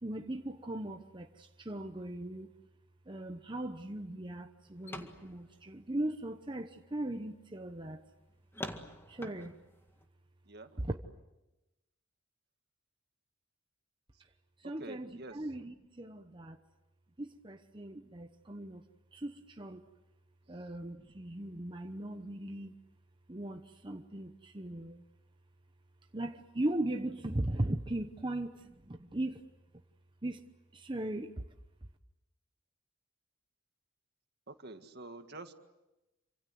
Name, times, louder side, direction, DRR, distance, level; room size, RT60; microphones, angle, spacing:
voice 1, 0.0-2.5 3.1-8.0 9.1-9.6 10.8-11.0 14.6-16.6 17.2-18.8 19.1-19.8 20.5-22.7 23.3-25.0 26.1-29.4 30.2-31.3, right 1 dB, 25° right, 5 dB, 1.0 m, -38 dB
sound 1, 4.7-6.3 7.0-7.1 7.6-7.7 8.5-10.1, left 1 dB, 10° left, 1.9 m, -45 dB
voice 2, 10.5-10.9 14.6-15.5 20.5-20.8 34.5-35.5, right 2 dB, 55° right, 7 dB, 1.9 m, -48 dB
28.0 x 26.0 x 7.9 m, 0.98 s
head